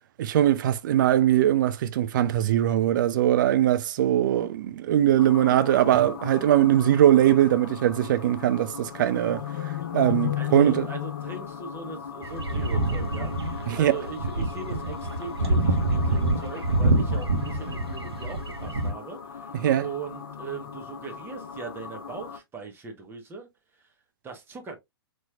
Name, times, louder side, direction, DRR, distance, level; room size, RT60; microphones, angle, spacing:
voice 1, 0.2-9.4 9.9-10.9 13.7-13.9 19.6-19.8, right 12 dB, 50° right, 0.5 m, -21 dB
sound 1, 5.2-22.4, left 8 dB, 60° left, 0.6 m, -37 dB
voice 2, 10.4-23.5 23.8-23.9 24.2-24.8, right 4 dB, 15° right, 1.0 m, -40 dB
sound 2, 12.2-18.9, right 2 dB, 75° right, 0.9 m, -26 dB
4.2 x 3.0 x 2.3 m
figure-of-eight pair, 110°, 13 cm